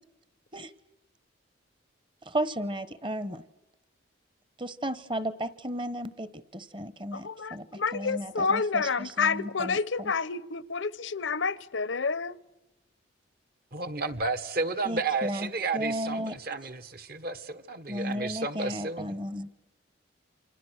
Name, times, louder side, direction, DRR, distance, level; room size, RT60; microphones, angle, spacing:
voice 1, 2.2-3.4 4.6-10.1 14.8-16.4 17.9-19.5, equal, 25° right, 1.2 m, -34 dB
voice 2, 7.1-12.4, left 5 dB, 70° left, 0.8 m, -29 dB
voice 3, 13.7-19.1, right 3 dB, 50° right, 1.5 m, -32 dB
28.5 x 26.5 x 6.5 m
head